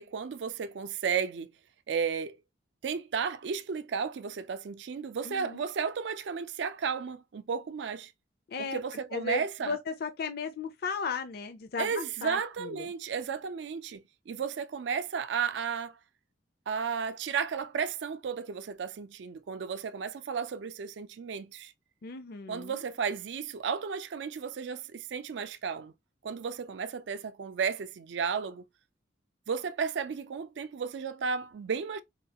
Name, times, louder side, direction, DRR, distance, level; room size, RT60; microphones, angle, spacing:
voice 1, 0.0-1.5 1.9-2.4 2.8-8.1 8.6-9.8 11.8-16.0 16.7-21.7 22.5-25.9 26.2-28.6 29.5-32.0, right 6 dB, 70° right, 0.4 m, -33 dB
voice 2, 5.2-5.7 8.5-8.8 9.1-12.9 22.0-22.8, left 4 dB, 55° left, 0.4 m, -36 dB
4.3 x 2.3 x 2.8 m
head